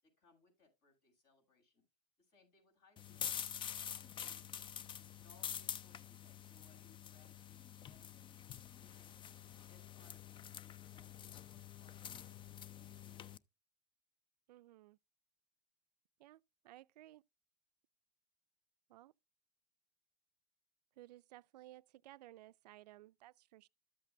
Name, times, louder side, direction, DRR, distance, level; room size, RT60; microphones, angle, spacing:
voice 1, 0.0-1.8 2.2-4.8 5.2-9.2 9.7-12.3 12.6-13.4, left 3 dB, 50° left, 6.7 m, -71 dB
sound 1, 3.0-13.4, left 9 dB, 25° left, 0.4 m, -47 dB
voice 2, 14.5-15.0 16.2-17.2 18.9-19.1 21.0-23.7, right 15 dB, 80° right, 0.4 m, -58 dB
13.5 x 8.1 x 2.2 m
hypercardioid pair, 100°, 21 cm